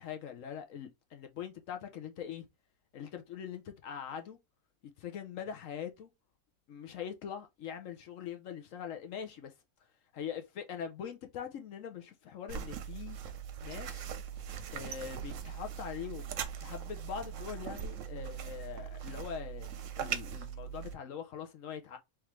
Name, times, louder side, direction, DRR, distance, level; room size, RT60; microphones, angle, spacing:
voice 1, 0.0-2.5 2.9-4.4 5.0-6.1 6.7-9.5 10.1-13.2 13.6-14.1 14.7-22.0, left 8 dB, 65° left, 1.0 m, -42 dB
sound 1, 12.5-20.9, right 8 dB, 65° right, 0.9 m, -40 dB
3.6 x 3.3 x 3.0 m
omnidirectional pair, 1.5 m